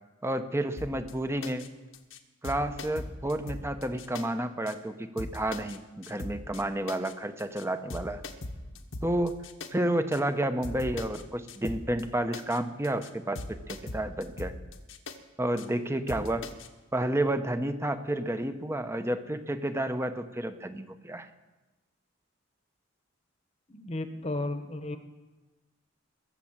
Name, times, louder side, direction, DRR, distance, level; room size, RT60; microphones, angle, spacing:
voice 1, 0.2-1.7 2.4-8.2 9.0-9.4 9.7-14.5 15.4-16.5 16.9-21.3, right 1 dB, 15° right, 9 dB, 0.8 m, -30 dB
sound 1, 0.8-1.1 1.4-1.7 1.9-2.2 2.4-4.2 4.7-4.8 5.2-5.8 6.0-6.6 6.9-7.1 7.4-7.6 7.9-9.7 10.1-10.2 10.6-11.2 11.5-12.0 12.3-12.6 12.8-13.1 13.4-15.2 15.6-15.7 16.1-16.7, left 2 dB, 85° left, 1.3 m, -40 dB
voice 2, 23.7-25.0, left 2 dB, 30° left, 8 dB, 1.1 m, -34 dB
21.5 x 7.4 x 7.4 m, 1.1 s
head